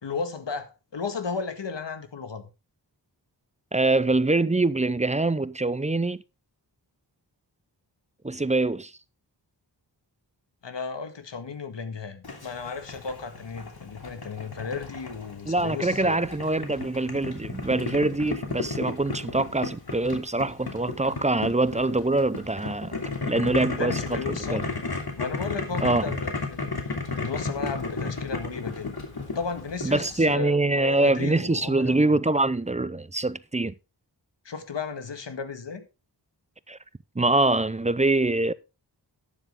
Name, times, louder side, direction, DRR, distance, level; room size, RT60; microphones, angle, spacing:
voice 1, 0.0-2.4 10.6-16.2 23.8-24.6 25.2-26.9 27.2-28.9 29.3-32.1 34.4-35.9, left 5 dB, 90° left, 1.8 m, -34 dB
voice 2, 3.7-6.2 8.2-8.9 15.5-22.9 23.3-24.7 25.8-26.1 29.8-33.7 36.7-36.8 37.2-38.5, right 2 dB, 15° right, 0.6 m, -24 dB
Boiling, 12.2-30.3, left 3 dB, 60° left, 2.9 m, -34 dB
12.0 x 9.5 x 3.7 m
wide cardioid pair, 65°, 42 cm